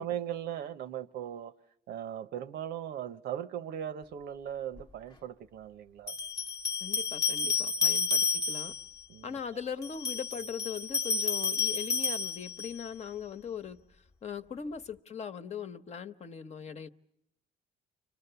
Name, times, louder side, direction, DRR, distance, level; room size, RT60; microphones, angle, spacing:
voice 1, 0.0-1.5 1.9-6.1 7.9-8.0 9.1-9.4 9.9-10.0, right 10 dB, 70° right, 1.0 m, -38 dB
sound 1, 4.8-4.9 6.1-8.9 9.8-12.9, left 5 dB, 25° left, 1.0 m, -31 dB
voice 2, 6.8-8.7 9.2-13.8 14.2-16.9, left 7 dB, 40° left, 1.1 m, -40 dB
29.5 x 25.5 x 6.9 m
cardioid pair, 110°, 17 cm